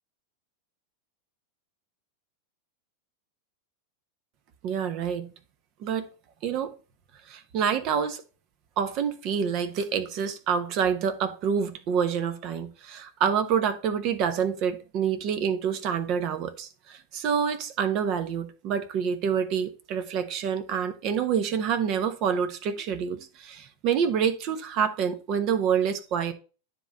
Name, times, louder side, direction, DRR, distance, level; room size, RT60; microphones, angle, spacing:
voice 1, 4.6-5.3 5.8-6.1 6.4-6.7 7.3-8.2 8.8-26.3, right 7 dB, 40° right, 1.2 m, -27 dB
9.9 x 4.0 x 4.3 m
figure-of-eight pair, 90°, 0 cm